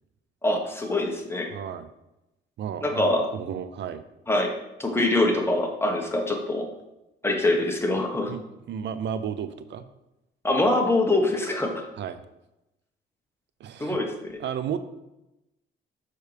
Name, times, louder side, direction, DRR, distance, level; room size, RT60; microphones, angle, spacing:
voice 1, 0.4-1.5 2.8-3.3 4.3-4.5 4.8-6.7 7.2-8.3 10.4-11.9 13.8-14.3, left 2 dB, 10° left, 2 dB, 1.3 m, -24 dB
voice 2, 1.5-1.9 2.6-4.0 8.3-9.8 12.0-12.2 13.6-14.0 14.4-14.8, right 8 dB, 65° right, 12 dB, 0.6 m, -33 dB
6.5 x 6.2 x 3.4 m, 0.91 s
cardioid pair, 90°, 20 cm